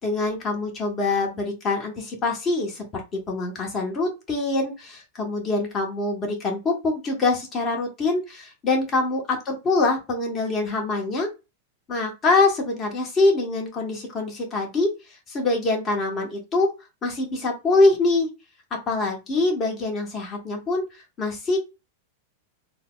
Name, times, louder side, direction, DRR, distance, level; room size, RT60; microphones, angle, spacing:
voice 1, 0.0-11.3 11.9-14.9 15.3-16.7 17.0-18.3 18.9-20.8 21.2-21.6, left 3 dB, 30° left, 1 dB, 1.3 m, -24 dB
3.8 x 2.2 x 2.4 m, 0.26 s
hypercardioid pair, 105°, 0 cm